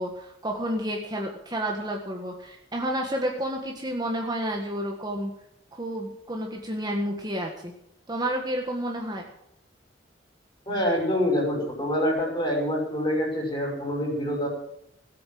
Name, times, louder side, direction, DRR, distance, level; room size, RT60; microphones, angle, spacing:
voice 1, 0.0-5.3 5.7-7.7 8.1-9.3, right 1 dB, 20° right, 1 dB, 1.6 m, -30 dB
voice 2, 10.7-14.5, equal, 25° left, 0 dB, 5.9 m, -26 dB
17.5 x 8.6 x 7.8 m, 0.76 s
head